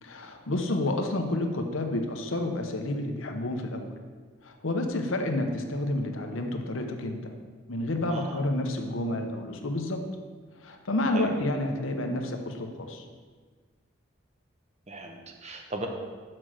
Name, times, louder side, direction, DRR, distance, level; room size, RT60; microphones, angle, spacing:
voice 1, 0.0-3.9 4.4-7.3 7.7-10.0 10.6-13.0, left 1 dB, 75° left, 4 dB, 0.9 m, -30 dB
voice 2, 8.1-8.5 11.1-11.3 14.9-15.9, right 2 dB, 35° right, 3 dB, 0.9 m, -37 dB
6.4 x 6.1 x 6.2 m, 1.5 s
head